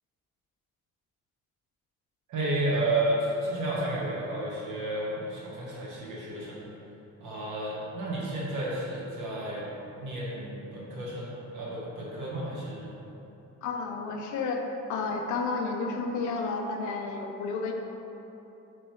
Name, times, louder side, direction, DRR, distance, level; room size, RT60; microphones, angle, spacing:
voice 1, 2.3-6.7 7.2-9.7 10.0-12.9, right 1 dB, 80° right, -6 dB, 1.1 m, -32 dB
voice 2, 13.6-14.6 14.9-17.7, left 4 dB, 75° left, 3 dB, 0.5 m, -31 dB
3.1 x 3.0 x 4.3 m, 3.0 s
cardioid pair, 90°, 30 cm